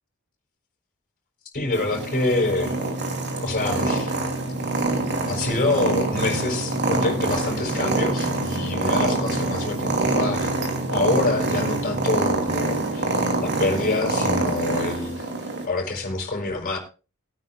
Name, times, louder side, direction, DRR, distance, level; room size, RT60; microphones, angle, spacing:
voice 1, 1.5-2.8 3.4-4.2 5.3-10.5 10.9-13.1 13.4-16.8, left 2 dB, 40° left, 0 dB, 5.0 m, -26 dB
Purr, 1.7-15.6, right 2 dB, 55° right, 2.9 m, -25 dB
Organ, 1.9-12.8, right 2 dB, 20° right, 4.2 m, -35 dB
21.0 x 9.7 x 2.4 m, 0.34 s
head